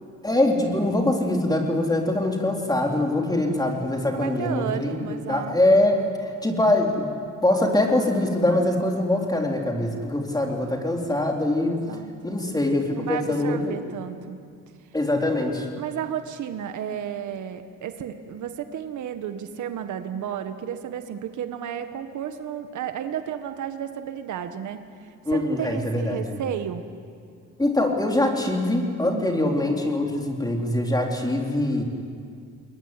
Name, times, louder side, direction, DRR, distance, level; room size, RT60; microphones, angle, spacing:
voice 1, 0.2-6.0 6.4-7.1 7.4-11.8 12.2-13.8 14.9-15.7 25.3-26.4 27.6-31.8, left 1 dB, 15° left, 1 dB, 4.1 m, -23 dB
voice 2, 4.1-5.6 11.7-12.4 13.0-14.4 15.7-26.8 29.1-29.3, right 9 dB, 75° right, 8 dB, 1.6 m, -33 dB
21.5 x 21.5 x 9.9 m, 2.3 s
cardioid pair, 90°, 30 cm